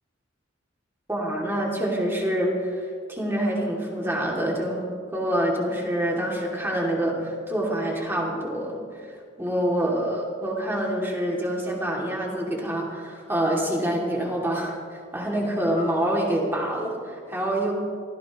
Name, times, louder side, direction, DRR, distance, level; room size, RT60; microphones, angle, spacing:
voice 1, 1.1-9.1 9.4-17.7, right 1 dB, 10° right, -2 dB, 2.8 m, -26 dB
24.0 x 15.5 x 3.2 m, 2.1 s
head